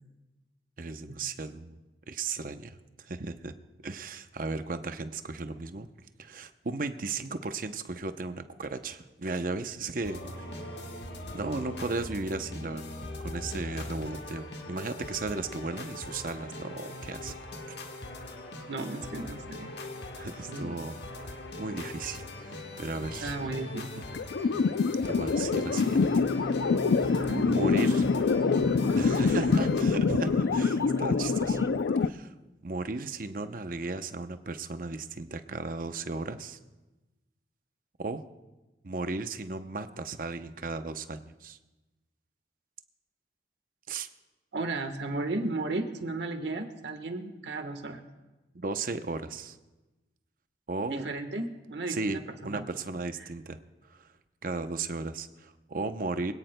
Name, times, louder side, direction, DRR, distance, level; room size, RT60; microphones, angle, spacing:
voice 1, 0.8-1.8 2.1-3.5 3.8-5.9 6.2-10.8 11.3-17.3 20.2-21.0 21.6-23.4 25.0-26.0 27.4-28.1 28.9-31.6 32.0-32.3 32.6-36.6 38.0-38.2 38.8-41.6 43.9-44.1 48.6-49.6 50.7-51.0 51.9-52.2 52.4-53.6 53.9-54.1 54.4-56.3, right 3 dB, 50° right, 9 dB, 0.7 m, -35 dB
sound 1, 10.0-29.8, left 1 dB, 75° left, 1.4 m, -41 dB
voice 2, 18.7-19.7 20.5-20.8 23.2-24.1 27.1-27.5 29.4-29.5 44.5-48.0 50.9-52.6, right 2 dB, 80° right, 6 dB, 1.3 m, -35 dB
sound 2, 24.1-32.1, left 5 dB, 90° left, 0.4 m, -25 dB
sound 3, 25.8-31.8, right 2 dB, 20° right, 0.4 m, -37 dB
24.0 x 17.0 x 2.2 m, 1.1 s
head